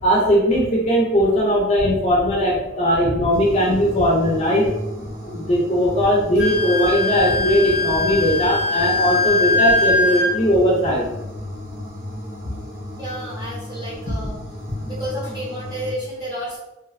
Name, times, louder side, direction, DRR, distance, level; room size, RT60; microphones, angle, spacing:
voice 1, 0.0-4.7 5.2-11.1 14.1-14.2, equal, 35° left, -3 dB, 0.4 m, -19 dB
sound 1, 3.3-15.9, left 1 dB, 85° right, 1.4 m, -34 dB
Wind instrument woodwind instrument, 6.4-10.3, left 2 dB, 55° right, 0.7 m, -21 dB
voice 2, 13.0-14.4 14.8-16.6, equal, 20° right, -6 dB, 0.8 m, -31 dB
2.5 x 2.0 x 2.4 m, 0.93 s
head